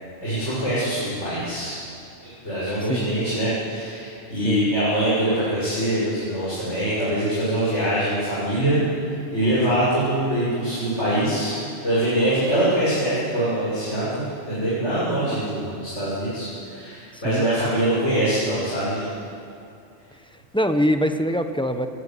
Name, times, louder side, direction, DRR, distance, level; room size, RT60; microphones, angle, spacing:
voice 1, 0.2-1.8 2.2-8.8 9.3-11.6 11.8-19.1, right 1 dB, 80° left, -10 dB, 7.4 m, -23 dB
voice 2, 15.0-15.4 17.1-17.5 20.1-21.9, equal, 5° left, 6 dB, 1.1 m, -25 dB
21.0 x 18.5 x 9.4 m, 2.5 s
omnidirectional pair, 1.2 m